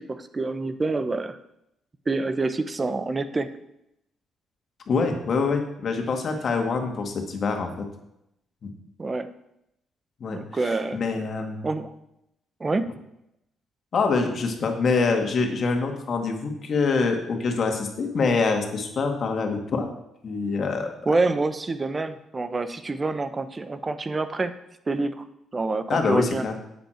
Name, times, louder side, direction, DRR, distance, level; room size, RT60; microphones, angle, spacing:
voice 1, 0.0-1.4 2.1-3.5 9.0-9.3 10.3-11.0 11.6-11.9 12.6-12.9 21.1-24.6 24.9-25.3 25.5-26.5, right 3 dB, 25° right, 11 dB, 0.9 m, -27 dB
voice 2, 4.9-7.7 8.6-8.7 10.2-11.7 13.9-19.9 20.2-20.9 25.9-26.5, left 4 dB, 50° left, 4 dB, 1.9 m, -25 dB
9.9 x 8.2 x 4.5 m, 0.82 s
cardioid pair, 90°, 0 cm